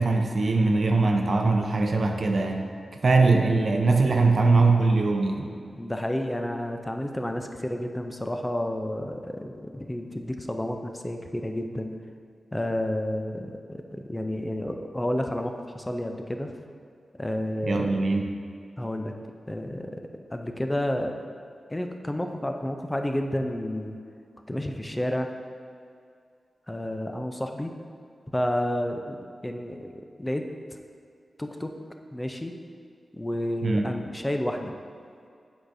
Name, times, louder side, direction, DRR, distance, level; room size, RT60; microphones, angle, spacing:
voice 1, 0.0-2.7 3.0-5.5 17.6-18.3 33.6-33.8, right 3 dB, 50° right, 3 dB, 0.5 m, -21 dB
voice 2, 5.7-11.9 12.5-16.5 17.2-18.0 18.8-19.1 19.5-20.0 20.3-21.3 21.7-24.0 24.5-25.3 26.7-27.7 28.3-29.2 29.4-30.4 31.4-31.7 32.1-32.5 33.1-34.7, left 1 dB, 10° left, 5 dB, 0.4 m, -30 dB
8.6 x 4.8 x 2.6 m, 2.4 s
wide cardioid pair, 120°, 0 cm